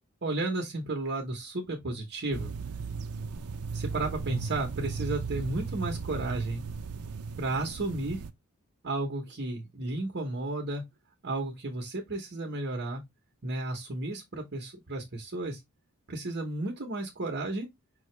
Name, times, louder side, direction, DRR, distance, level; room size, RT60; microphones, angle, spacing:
voice 1, 0.2-2.5 3.7-6.6 7.4-8.2 8.8-10.8 11.2-13.0 13.4-15.6 16.1-17.7, right 2 dB, 50° right, 1.0 m, -33 dB
sound 1, 2.3-8.3, right 5 dB, 75° right, 0.5 m, -36 dB
5.5 x 2.9 x 3.2 m
head